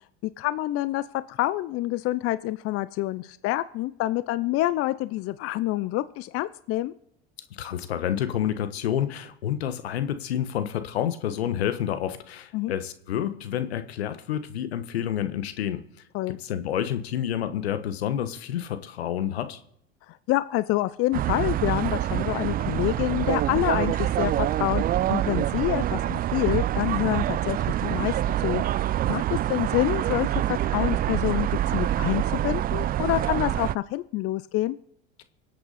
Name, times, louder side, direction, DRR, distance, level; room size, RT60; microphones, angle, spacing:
voice 1, 0.2-6.9 12.5-12.7 16.1-16.4 20.3-28.8 29.1-34.8, left 16 dB, 50° left, 16 dB, 0.6 m, -27 dB
voice 2, 7.6-15.8 16.3-19.6, left 10 dB, 85° left, 11 dB, 1.4 m, -29 dB
sound 1, 21.1-33.8, right 12 dB, 30° right, 0.4 m, -26 dB
25.0 x 8.5 x 4.2 m, 0.72 s
hypercardioid pair, 90°, 31 cm